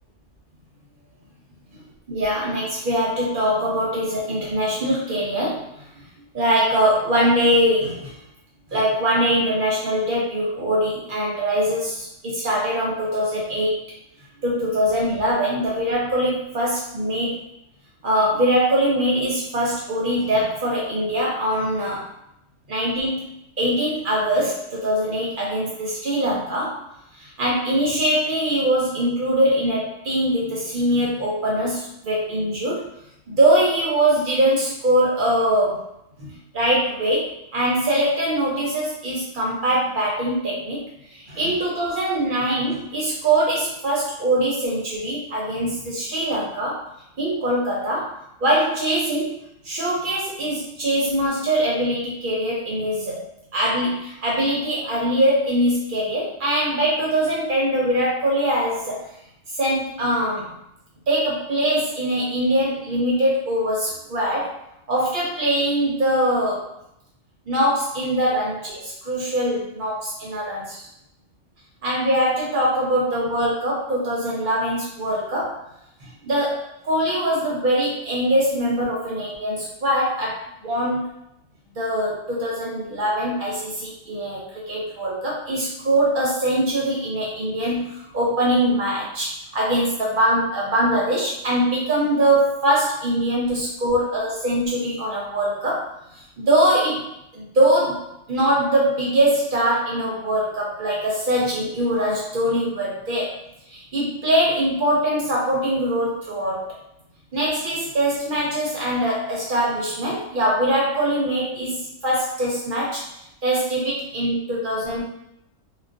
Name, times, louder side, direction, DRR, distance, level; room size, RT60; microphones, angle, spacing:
voice 1, 2.1-5.7 6.3-8.2 8.7-13.8 14.4-17.4 18.0-22.1 22.7-26.8 27.2-32.9 33.3-35.8 36.2-40.8 41.1-46.8 47.2-49.4 49.6-53.2 53.5-59.0 59.5-60.5 61.1-64.5 64.9-66.7 67.5-70.8 71.8-75.6 76.0-76.6 76.8-81.1 81.7-103.3 103.7-106.7 107.3-113.0 113.4-115.0, right 1 dB, 55° right, -5 dB, 0.7 m, -22 dB
2.3 x 2.2 x 2.4 m, 0.81 s
omnidirectional pair, 1.3 m